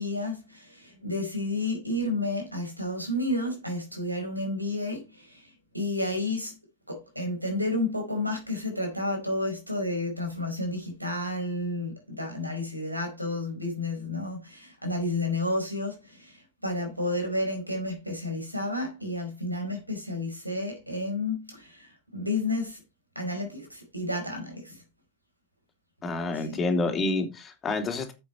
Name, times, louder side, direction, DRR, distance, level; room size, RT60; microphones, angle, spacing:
voice 1, 0.0-6.6 6.9-22.8 23.1-24.8 26.3-26.6, left 2 dB, 85° right, 4.7 m, -31 dB
voice 2, 26.0-28.1, left 3 dB, 20° left, 3.0 m, -28 dB
9.6 x 7.9 x 4.5 m
figure-of-eight pair, 90°, 0 cm